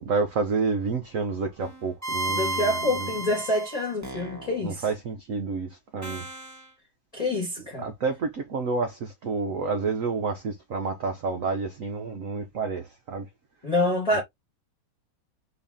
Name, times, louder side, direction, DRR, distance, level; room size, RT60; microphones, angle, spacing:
voice 1, 0.0-3.1 4.6-6.3 7.8-13.3 14.1-14.2, right 4 dB, 60° right, 0.9 m, -29 dB
sound 1, 1.6-4.7 6.0-6.6, right 2 dB, 10° right, 0.9 m, -33 dB
voice 2, 2.3-4.8 7.1-7.8 13.6-14.2, left 1 dB, 20° left, 1.2 m, -26 dB
4.1 x 2.6 x 3.5 m
omnidirectional pair, 2.2 m